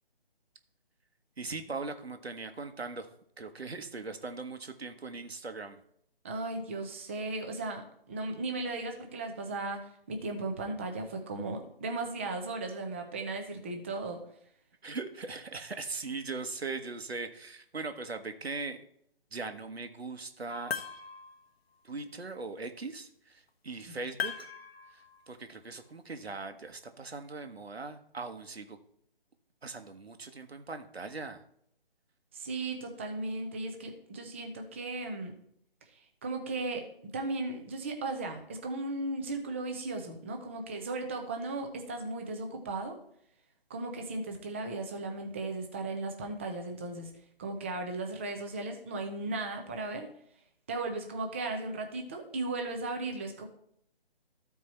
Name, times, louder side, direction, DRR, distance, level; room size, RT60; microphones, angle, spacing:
voice 1, 1.4-3.1 3.4-5.8 14.8-18.8 19.3-20.8 21.8-24.5 24.9-28.8 29.6-31.4, right 3 dB, 90° right, 7 dB, 1.3 m, -40 dB
voice 2, 6.2-14.2 23.9-24.0 32.3-35.4 35.9-36.8 37.1-43.0 43.7-47.1 47.4-50.1 50.7-53.4, right 2 dB, 15° right, 3 dB, 0.6 m, -36 dB
sound 1, 20.5-21.5 24.2-25.3, left 6 dB, 80° left, 1.1 m, -38 dB
13.5 x 4.6 x 4.3 m, 0.70 s
figure-of-eight pair, 155°, 30 cm